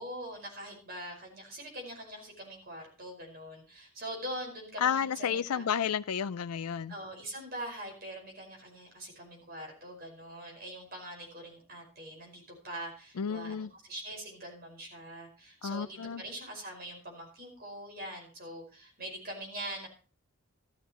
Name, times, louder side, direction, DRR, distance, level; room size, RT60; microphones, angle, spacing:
voice 1, 0.0-5.6 6.9-19.9, right 1 dB, 45° right, 5.2 m, -43 dB
voice 2, 4.8-6.9 13.2-13.7 15.6-16.2, left 7 dB, 90° left, 0.5 m, -31 dB
14.0 x 12.5 x 3.0 m
head